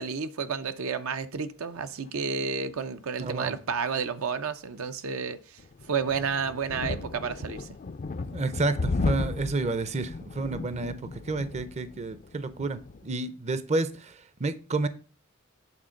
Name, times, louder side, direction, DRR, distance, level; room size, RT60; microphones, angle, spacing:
voice 1, 0.0-5.6 5.9-7.7, right 5 dB, 75° right, 0.6 m, -31 dB
voice 2, 3.2-3.5 8.3-10.9 11.3-14.9, right 3 dB, 30° right, 0.5 m, -30 dB
sound 1, 5.6-13.1, left 3 dB, 40° left, 0.4 m, -35 dB
8.8 x 3.7 x 6.3 m
head